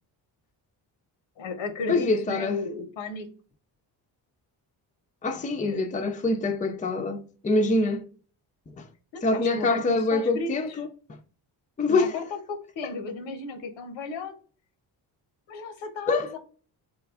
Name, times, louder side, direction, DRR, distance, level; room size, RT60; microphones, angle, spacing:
voice 1, 1.4-3.3 5.4-5.9 9.1-10.8 11.9-14.3 15.5-16.4, left 3 dB, 85° left, 0.9 m, -35 dB
voice 2, 1.9-2.6 5.2-8.0 8.8-8.9 9.2-10.9 11.8-12.2 16.1-16.3, left 3 dB, 20° left, 0.5 m, -25 dB
3.8 x 2.3 x 3.5 m
cardioid pair, 75°, 45 cm